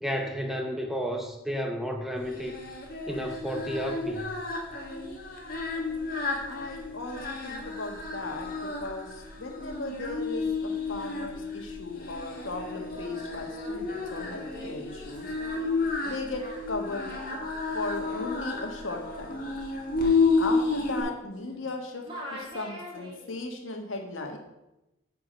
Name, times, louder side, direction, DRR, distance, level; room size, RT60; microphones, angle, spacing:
voice 1, 0.0-2.6 3.1-4.3, equal, ahead, 3 dB, 0.7 m, -32 dB
Singing, 2.3-21.0, left 4 dB, 45° left, 1.8 m, -31 dB
voice 2, 6.5-15.3 16.0-17.1 17.7-19.5 20.0-24.4, left 2 dB, 85° left, 3 dB, 1.5 m, -37 dB
Singing 2, 12.7-21.7 22.0-23.5, equal, 25° right, 2.2 m, -46 dB
8.6 x 4.7 x 6.3 m, 0.94 s
head